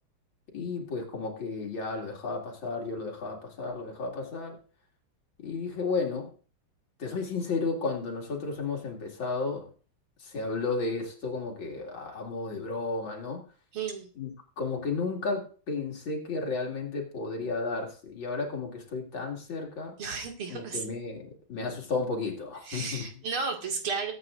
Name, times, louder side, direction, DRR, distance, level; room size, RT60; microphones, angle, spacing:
voice 1, 0.5-4.6 5.4-6.3 7.0-9.7 10.2-13.4 14.2-19.9 20.5-23.2, left 4 dB, 65° left, 1 dB, 3.0 m, -33 dB
voice 2, 13.7-14.1 20.0-20.8 22.6-24.1, right 5 dB, 80° right, 2 dB, 2.9 m, -33 dB
21.5 x 8.7 x 2.5 m, 0.40 s
omnidirectional pair, 2.3 m